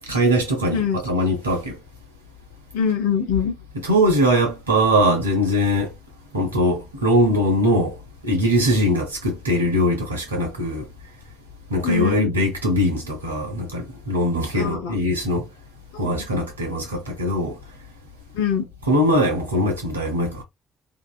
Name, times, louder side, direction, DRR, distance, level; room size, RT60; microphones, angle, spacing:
voice 1, 0.1-1.8 3.8-5.9 6.3-8.0 8.2-10.9 11.7-15.4 16.0-17.6 18.8-20.4, equal, 90° right, 0.6 m, -21 dB
voice 2, 2.7-3.5 11.8-12.3 14.5-14.9 18.3-18.6, left 7 dB, 75° left, 0.6 m, -23 dB
2.8 x 2.4 x 2.3 m
figure-of-eight pair, 40°, 0 cm